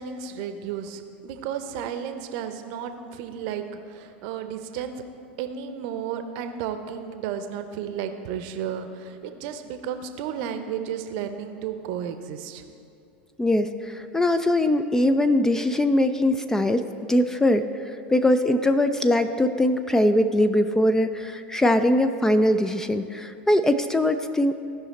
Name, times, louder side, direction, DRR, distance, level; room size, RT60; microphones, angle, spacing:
voice 1, 0.0-4.9 5.4-12.7, right 8 dB, 50° right, 8 dB, 0.7 m, -33 dB
voice 2, 13.4-24.6, left 1 dB, 10° left, 10 dB, 0.3 m, -22 dB
16.0 x 5.5 x 4.1 m, 2.5 s
figure-of-eight pair, 85°, 6 cm